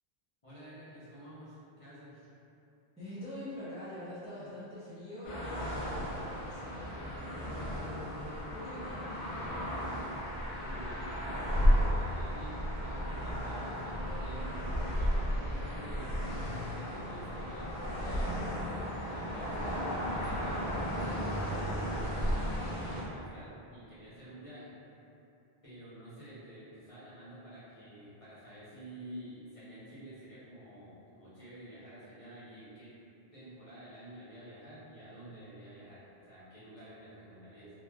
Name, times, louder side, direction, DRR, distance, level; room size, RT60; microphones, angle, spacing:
voice 1, 0.4-2.2 10.6-16.2 16.7-18.7 19.0-20.7 21.1-24.8 25.6-33.0 33.3-37.7, right 1 dB, 35° left, -12 dB, 0.7 m, -49 dB
voice 2, 3.0-9.6, left 1 dB, 10° right, -12 dB, 0.4 m, -45 dB
sound 1, 5.2-23.0, equal, 75° left, 0.9 m, -34 dB
3.0 x 2.2 x 2.2 m, 2.8 s
omnidirectional pair, 1.1 m